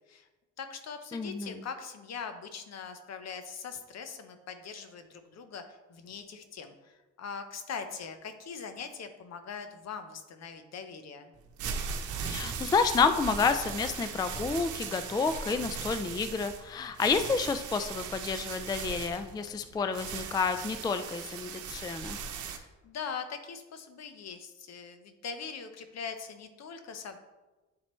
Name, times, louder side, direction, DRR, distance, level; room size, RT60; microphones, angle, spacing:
voice 1, 0.6-11.3 22.8-27.2, left 6 dB, 60° left, 8 dB, 0.8 m, -41 dB
voice 2, 1.1-1.6 12.2-22.2, left 5 dB, 15° left, 9 dB, 0.3 m, -30 dB
sound 1, 11.4-22.6, right 6 dB, 75° right, 0.9 m, -38 dB
9.5 x 4.2 x 3.1 m, 1.1 s
cardioid pair, 90°, 30 cm